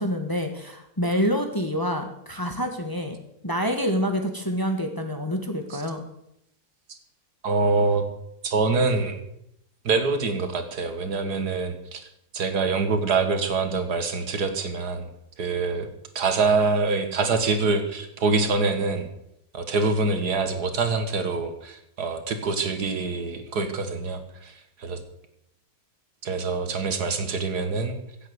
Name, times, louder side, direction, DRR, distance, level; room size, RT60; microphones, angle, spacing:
voice 1, 0.0-3.2 3.4-6.0, equal, 15° left, 5 dB, 1.5 m, -27 dB
voice 2, 7.4-8.1 8.4-9.2 9.8-12.0 12.3-15.1 15.4-15.9 16.2-19.1 19.5-25.0 26.2-28.0, right 4 dB, 75° right, 7 dB, 2.2 m, -25 dB
16.0 x 8.2 x 8.0 m, 0.78 s
omnidirectional pair, 1.7 m